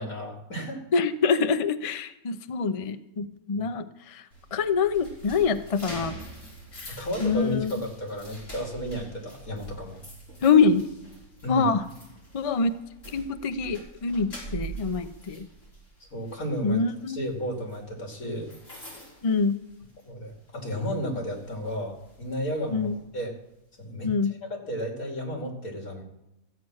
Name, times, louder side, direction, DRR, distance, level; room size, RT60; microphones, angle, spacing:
voice 1, 0.0-0.8 3.5-3.6 6.9-10.0 11.4-11.7 16.1-18.5 20.0-23.4 23.8-24.1 24.5-26.0, equal, 75° left, 1 dB, 3.3 m, -33 dB
voice 2, 0.9-6.2 6.7-7.7 10.4-10.9 11.5-11.8 12.3-12.7 13.1-15.5 16.6-17.2 19.2-19.6 22.7-23.0 24.0-24.3, left 5 dB, 45° left, 10 dB, 0.4 m, -25 dB
sound 1, 4.3-20.2 20.6-20.8 21.3-23.0, right 2 dB, 60° left, 4.6 m, -44 dB
14.5 x 8.5 x 6.3 m, 0.88 s
omnidirectional pair, 1.5 m